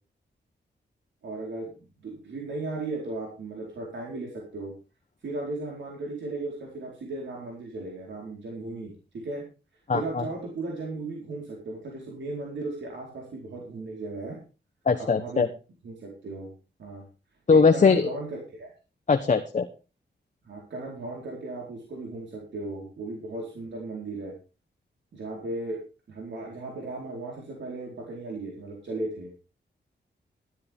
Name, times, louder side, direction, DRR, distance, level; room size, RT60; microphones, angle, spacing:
voice 1, 1.2-1.7 2.0-4.7 5.2-9.4 9.9-14.4 15.0-15.5 15.8-16.5 16.8-17.0 17.5-18.7 20.4-24.3 25.1-25.8 26.1-29.3, right 2 dB, 85° right, -2 dB, 4.4 m, -36 dB
voice 2, 9.9-10.2 14.9-15.5 17.5-18.1 19.1-19.7, left 5 dB, 40° left, 6 dB, 1.1 m, -20 dB
13.5 x 12.5 x 3.6 m, 0.32 s
wide cardioid pair, 120°, 18 cm